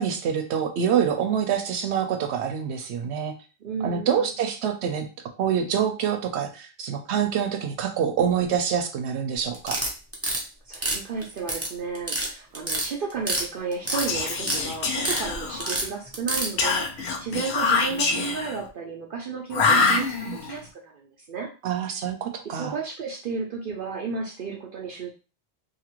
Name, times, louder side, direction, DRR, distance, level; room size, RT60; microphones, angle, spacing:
voice 1, 0.0-3.3 3.8-5.1 5.4-9.8 21.6-22.7, right 8 dB, 90° right, 5 dB, 0.9 m, -26 dB
voice 2, 3.6-4.4 10.6-21.5 22.5-25.1, right 5 dB, 60° right, -1 dB, 0.7 m, -33 dB
sound 1, 9.5-10.4 10.7-11.7 11.9-12.3 12.5-13.4 13.7-14.6 14.9-15.2 15.6-16.5, right 1 dB, 15° right, 0.6 m, -27 dB
Whispering, 13.9-15.8 16.6-18.6 19.5-20.6, left 4 dB, 80° left, 0.9 m, -25 dB
2.7 x 2.4 x 2.9 m, 0.33 s
omnidirectional pair, 1.1 m